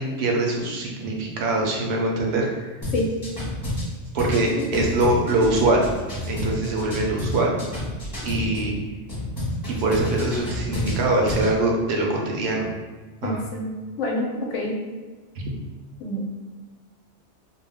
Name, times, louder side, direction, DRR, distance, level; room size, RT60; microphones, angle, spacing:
voice 1, 0.0-2.6 4.1-5.8 6.3-7.6 8.2-8.8 9.8-12.7 13.2-13.4 15.4-15.5, right 2 dB, 70° right, -1 dB, 0.8 m, -23 dB
sound 1, 2.8-8.7 9.1-11.5, left 1 dB, 20° left, 1.0 m, -29 dB
voice 2, 13.2-13.7 14.0-14.7 16.0-16.2, left 1 dB, 90° left, -1 dB, 0.9 m, -27 dB
2.3 x 2.1 x 3.3 m, 1.3 s
omnidirectional pair, 1.2 m